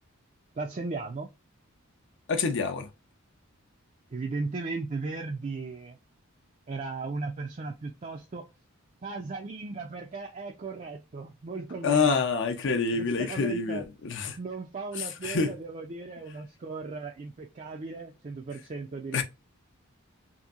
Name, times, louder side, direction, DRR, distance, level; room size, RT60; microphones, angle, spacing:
voice 1, 0.6-1.3 4.1-6.0 6.7-8.5 9.0-12.2 12.9-13.8 14.3-19.2, right 3 dB, 35° right, 0.4 m, -36 dB
voice 2, 2.3-2.9 11.8-14.4 15.0-15.5 19.1-19.2, left 4 dB, 55° left, 0.6 m, -27 dB
2.8 x 2.6 x 2.4 m
head